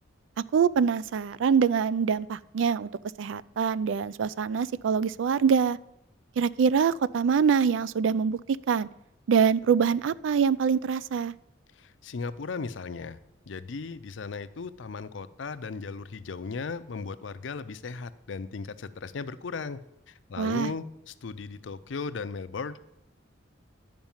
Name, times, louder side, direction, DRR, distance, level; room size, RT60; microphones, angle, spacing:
voice 1, 0.5-2.9 3.2-5.8 6.4-8.4 8.7-8.9 9.3-11.3 20.4-20.7, right 6 dB, 70° right, 18 dB, 0.3 m, -24 dB
voice 2, 11.7-13.2 13.5-19.8 20.1-22.8, left 4 dB, 70° left, 14 dB, 0.5 m, -36 dB
10.5 x 5.2 x 7.2 m, 0.83 s
head